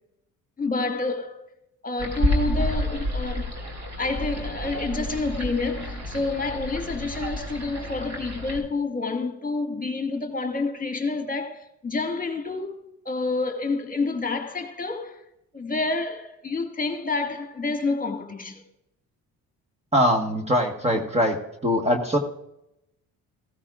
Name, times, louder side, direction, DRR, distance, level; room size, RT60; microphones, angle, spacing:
voice 1, 0.6-1.4 1.8-3.6 4.0-12.8 13.1-15.2 15.5-18.6, left 3 dB, 25° left, 1.9 m, -28 dB
sound 1, 2.0-8.6, equal, 45° right, 2.7 m, -29 dB
voice 2, 19.9-21.4 21.6-22.2, equal, 20° right, 1.4 m, -22 dB
15.0 x 14.0 x 2.5 m
supercardioid pair, 75°, 36 cm